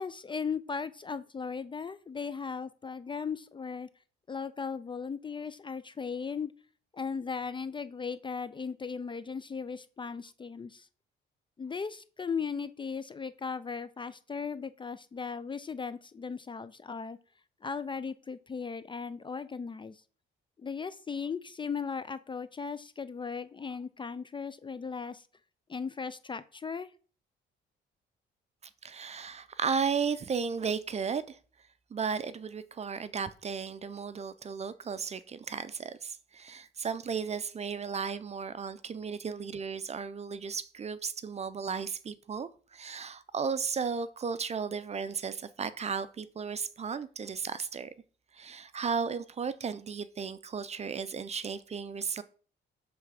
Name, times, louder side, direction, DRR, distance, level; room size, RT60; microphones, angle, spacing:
voice 1, 0.0-3.9 4.3-6.5 6.9-10.9 11.6-17.2 17.6-20.0 20.6-25.3 25.7-26.9, left 5 dB, 25° left, 0.4 m, -37 dB
voice 2, 28.8-31.4 31.9-47.9 48.3-52.2, right 6 dB, 35° right, 0.5 m, -34 dB
6.3 x 3.4 x 4.8 m
cardioid pair, 90°, 20 cm